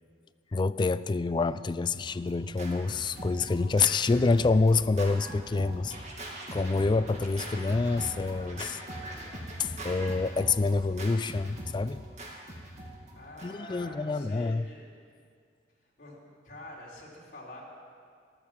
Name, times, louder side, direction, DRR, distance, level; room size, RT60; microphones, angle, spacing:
voice 1, 0.5-5.9 6.5-8.8 9.6-12.0 13.4-14.7, left 3 dB, 25° left, 0.3 m, -27 dB
Scratching (performance technique), 1.7-13.8, right 1 dB, 40° right, 2.4 m, -41 dB
voice 2, 13.1-14.9 15.8-17.6, left 1 dB, 50° left, 3.6 m, -46 dB
14.0 x 12.5 x 7.3 m
head